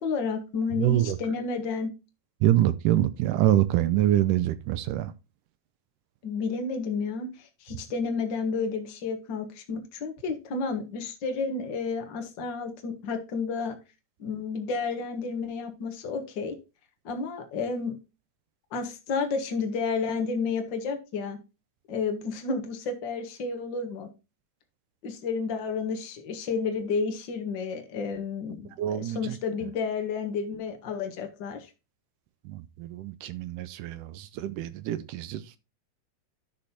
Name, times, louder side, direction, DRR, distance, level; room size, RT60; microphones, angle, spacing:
voice 1, 0.0-1.9 6.2-13.7 14.2-16.5 17.0-18.0 18.7-21.4 21.9-24.1 25.0-31.7, left 4 dB, 50° left, 1.5 m, -31 dB
voice 2, 0.8-1.2 2.4-5.1 28.8-29.4 32.5-35.4, right 13 dB, 80° right, 2.0 m, -25 dB
11.5 x 6.3 x 2.8 m
omnidirectional pair, 4.0 m